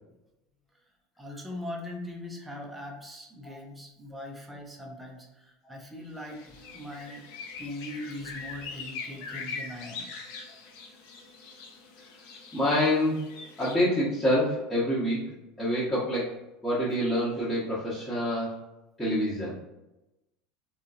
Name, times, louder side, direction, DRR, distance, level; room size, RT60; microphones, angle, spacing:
voice 1, 1.2-6.4 6.7-7.2 7.6-10.1, left 1 dB, 5° right, 0 dB, 0.6 m, -40 dB
sound 1, 6.2-13.8, left 4 dB, 55° left, 0.5 m, -42 dB
voice 2, 12.5-13.2 13.6-15.3 15.6-16.3 16.6-18.5 19.0-19.5, left 1 dB, 10° left, -10 dB, 1.0 m, -26 dB
3.6 x 2.3 x 2.5 m, 0.97 s
figure-of-eight pair, 75°, 0 cm